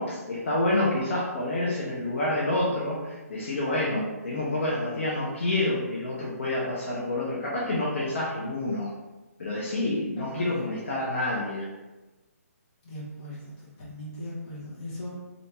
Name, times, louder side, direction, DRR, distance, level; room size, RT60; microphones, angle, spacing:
voice 1, 0.0-8.9 9.4-11.7, left 1 dB, 50° left, -6 dB, 0.8 m, -28 dB
voice 2, 12.8-13.4 13.8-15.2, left 1 dB, 30° left, -7 dB, 1.0 m, -38 dB
3.4 x 2.7 x 2.9 m, 1.1 s
hypercardioid pair, 165°, 9 cm